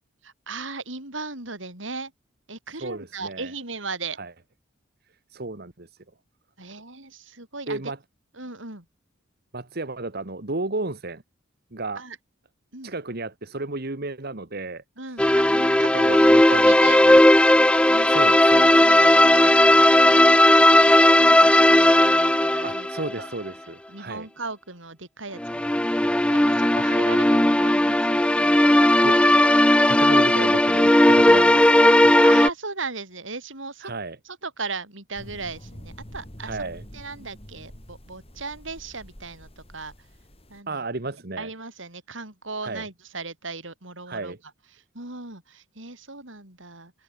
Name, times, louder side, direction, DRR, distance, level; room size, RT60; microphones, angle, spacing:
voice 1, 0.2-2.1 2.5-4.2 6.6-7.8 8.4-8.9 12.0-12.2 12.7-12.9 15.0-17.0 17.9-20.2 20.6-22.9 23.2-23.3 23.9-29.1 32.2-33.9 34.3-36.6 36.9-39.9 40.5-40.8 41.4-44.4 44.9-46.9, right 4 dB, 70° right, 7.5 m, -37 dB
voice 2, 2.8-3.5 4.2-4.3 5.3-5.9 7.7-8.0 9.5-11.2 11.7-12.0 12.8-14.8 15.9-16.7 17.0-17.3 18.1-18.8 22.6-24.3 29.0-29.2 29.8-32.1 33.8-34.2 36.4-36.8 40.7-41.5 42.6-42.9 44.1-44.4, right 2 dB, 50° right, 1.7 m, -33 dB
sound 1, 15.2-23.1 23.5-23.6 25.4-32.5, left 1 dB, 5° left, 0.5 m, -16 dB
sound 2, 35.1-40.6, equal, 30° left, 5.5 m, -45 dB
head